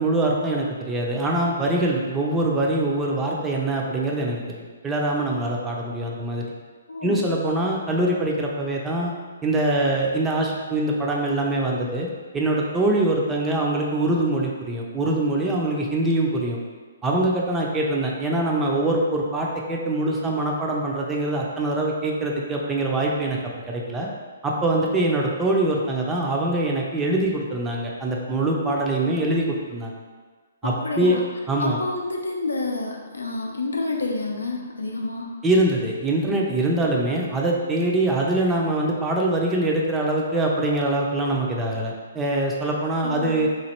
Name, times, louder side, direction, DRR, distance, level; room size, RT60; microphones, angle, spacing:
voice 1, 0.0-6.4 7.0-9.1 9.4-12.1 12.3-16.6 17.0-23.4 23.7-24.1 24.4-29.9 30.6-31.2 31.5-31.8 35.4-43.5, right 2 dB, 15° right, -2 dB, 0.4 m, -23 dB
voice 2, 6.9-7.2 30.6-31.2 31.6-35.4 43.0-43.5, left 3 dB, 85° left, 0 dB, 0.5 m, -29 dB
3.0 x 2.4 x 2.9 m, 1.5 s
hypercardioid pair, 135°, 0 cm